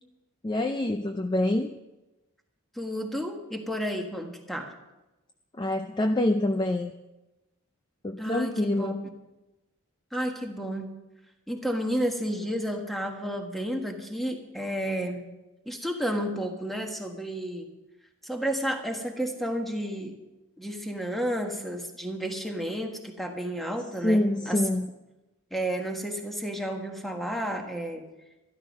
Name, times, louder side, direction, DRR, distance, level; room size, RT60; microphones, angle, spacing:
voice 1, 0.4-1.7 5.6-6.9 8.0-9.0 24.0-24.9, left 1 dB, 20° left, 6 dB, 0.4 m, -26 dB
voice 2, 2.7-4.7 8.2-8.9 10.1-10.9 11.5-15.2 15.6-17.7 18.2-20.1 20.6-24.6 25.5-28.0, equal, ahead, 3 dB, 1.4 m, -31 dB
12.5 x 12.5 x 5.3 m, 1.0 s
head